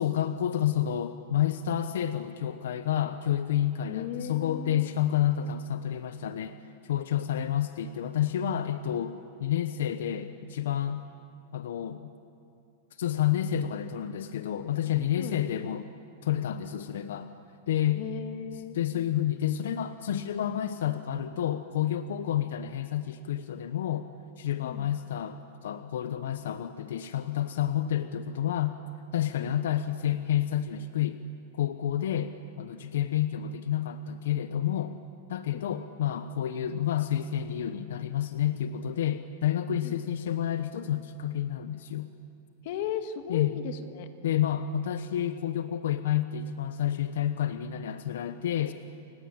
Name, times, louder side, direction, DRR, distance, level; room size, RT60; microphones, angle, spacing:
voice 1, 0.0-6.6 6.8-11.0 11.5-12.1 13.0-15.9 16.2-17.3 17.7-18.0 18.7-24.1 24.4-28.7 29.1-31.2 31.5-32.3 32.6-35.0 35.3-42.1 43.3-43.5 44.2-48.7, left 10 dB, 75° left, 10 dB, 0.9 m, -29 dB
voice 2, 3.9-4.9 15.2-15.4 17.9-18.8 24.6-24.9 29.4-29.5 35.5-35.6 39.8-39.9 42.6-44.1, left 9 dB, 45° left, 8 dB, 1.6 m, -36 dB
29.5 x 16.0 x 8.9 m, 2.5 s
supercardioid pair, 170°, 0 cm